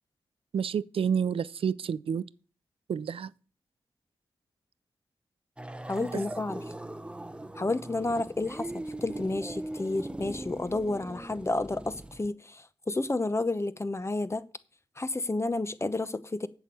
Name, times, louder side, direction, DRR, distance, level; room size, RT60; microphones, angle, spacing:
voice 1, 0.5-2.3 2.9-3.3, right 7 dB, 75° right, 0.5 m, -29 dB
sound 1, 5.6-12.3, right 1 dB, 10° right, 0.8 m, -40 dB
voice 2, 5.9-6.6 7.6-14.4 15.0-16.5, left 2 dB, 30° left, 1.0 m, -31 dB
8.2 x 7.0 x 7.6 m
cardioid pair, 50°, 10 cm